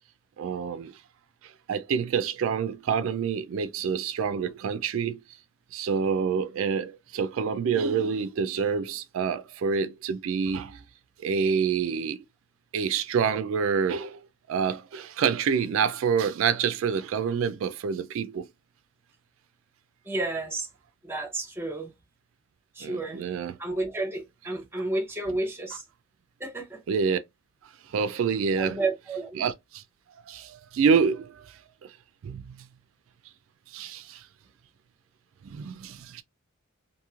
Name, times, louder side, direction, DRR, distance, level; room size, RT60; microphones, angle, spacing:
voice 1, 0.4-0.9 1.4-5.2 5.7-10.8 11.2-12.2 12.7-14.2 14.5-18.5 22.8-23.6 26.9-27.2 27.9-28.8 29.4-29.8 30.3-31.5 31.8-31.9 32.2-32.4 33.7-34.3 35.4-36.2, right 6 dB, 70° right, 0.3 m, -27 dB
voice 2, 20.0-20.7 21.0-21.9 22.7-23.2 23.6-25.8 26.4-26.8 28.6-29.4, right 2 dB, 10° right, 0.6 m, -31 dB
3.0 x 2.6 x 2.3 m
head